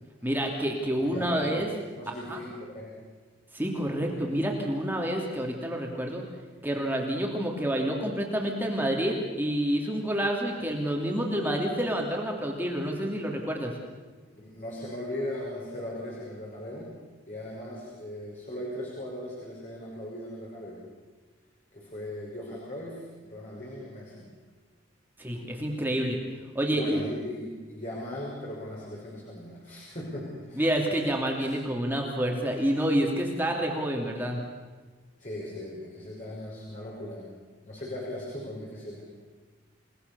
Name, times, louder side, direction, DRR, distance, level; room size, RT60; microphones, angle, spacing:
voice 1, 0.2-1.7 2.3-2.4 3.5-6.2 6.6-13.7 25.2-26.2 26.5-27.0 30.6-34.4, equal, 10° right, 0 dB, 2.9 m, -28 dB
voice 2, 1.0-1.6 1.9-2.9 14.3-16.9 17.3-20.8 21.7-24.3 26.7-30.7 31.4-31.5 35.2-37.3 37.6-39.0, left 1 dB, 40° left, -4 dB, 6.0 m, -38 dB
30.0 x 18.5 x 7.0 m, 1.4 s
head